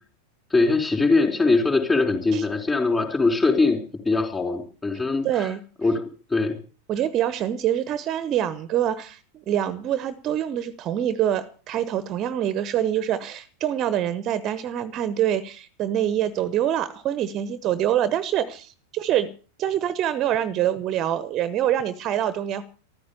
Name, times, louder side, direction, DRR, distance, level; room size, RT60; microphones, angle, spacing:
voice 1, 0.5-3.8 4.0-5.5 5.8-6.0 6.3-6.6, left 3 dB, 15° left, 4.4 m, -21 dB
voice 2, 5.2-5.6 6.9-19.3 19.6-22.6, right 11 dB, 35° right, 1.1 m, -25 dB
14.0 x 14.0 x 7.0 m
figure-of-eight pair, 90°, 0 cm